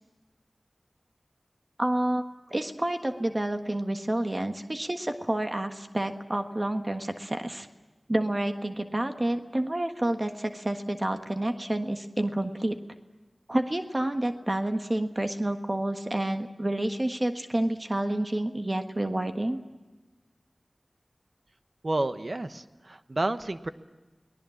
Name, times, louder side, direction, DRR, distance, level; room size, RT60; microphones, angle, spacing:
voice 1, 1.8-2.2 2.5-7.7 8.1-12.8 13.5-19.6, right 1 dB, 35° right, 6 dB, 1.5 m, -29 dB
voice 2, 21.8-23.7, right 2 dB, 55° right, 10 dB, 1.1 m, -30 dB
29.0 x 19.0 x 7.2 m, 1.2 s
wide cardioid pair, 45°, 0 cm